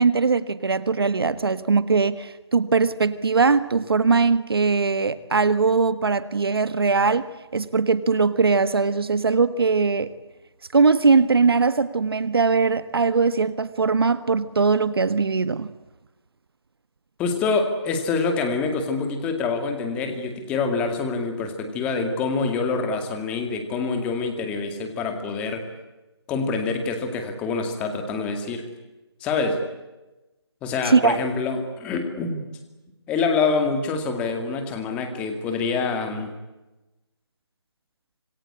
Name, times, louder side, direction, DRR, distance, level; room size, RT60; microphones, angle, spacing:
voice 1, 0.0-7.3 7.5-10.1 10.7-15.7 30.8-31.2, right 4 dB, 60° right, 14 dB, 1.5 m, -20 dB
voice 2, 17.2-25.7 26.3-28.7 29.2-29.6 30.6-32.5 33.1-36.3, left 4 dB, 10° left, 6 dB, 2.1 m, -26 dB
27.0 x 21.5 x 9.9 m, 1.1 s
figure-of-eight pair, 170°, 14 cm